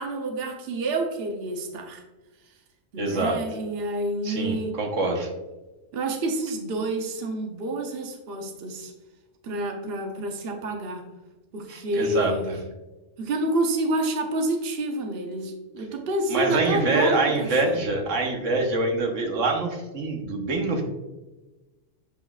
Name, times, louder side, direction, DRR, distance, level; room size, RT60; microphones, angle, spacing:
voice 1, 0.0-2.0 2.4-2.5 2.9-4.8 5.9-8.9 9.4-11.0 11.5-12.6 13.2-17.8, right 2 dB, 55° right, 3 dB, 1.1 m, -28 dB
voice 2, 3.0-3.4 4.2-5.3 11.7-12.5 16.3-20.8, right 2 dB, 75° right, 2 dB, 1.5 m, -25 dB
8.8 x 5.1 x 2.4 m, 1.1 s
omnidirectional pair, 1.3 m